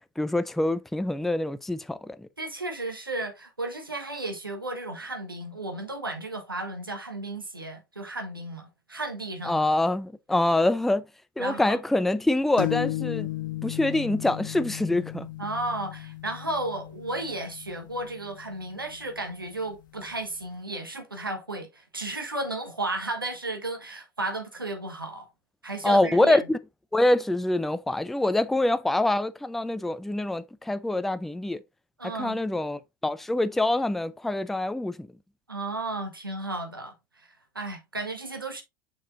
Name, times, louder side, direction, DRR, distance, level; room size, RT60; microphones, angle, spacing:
voice 1, 0.2-2.3 9.4-11.0 11.4-13.3 13.6-15.3 25.8-26.6 26.9-31.6 32.2-35.1, left 1 dB, ahead, 0.4 m, -25 dB
voice 2, 2.4-9.6 11.4-11.8 15.4-25.3 25.6-26.4 32.0-32.4 35.5-37.3 37.5-38.6, right 2 dB, 85° right, 1.3 m, -34 dB
sound 1, 12.6-20.1, left 16 dB, 65° left, 0.7 m, -36 dB
6.2 x 6.2 x 2.6 m
figure-of-eight pair, 80°, 11 cm